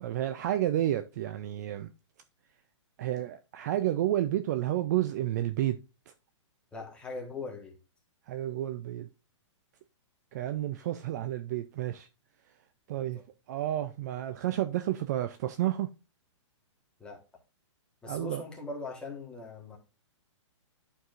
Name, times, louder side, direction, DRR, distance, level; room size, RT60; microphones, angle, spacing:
voice 1, 0.0-1.9 3.0-5.8 6.1-6.2 8.3-9.1 10.3-12.1 12.9-13.2 13.5-15.9 18.1-18.4, right 13 dB, 35° right, 0.4 m, -30 dB
voice 2, 6.7-7.8 13.1-13.2 17.0-17.2 18.0-19.8, left 3 dB, 5° left, 1.4 m, -40 dB
11.5 x 4.6 x 2.5 m
hypercardioid pair, 155°, 16 cm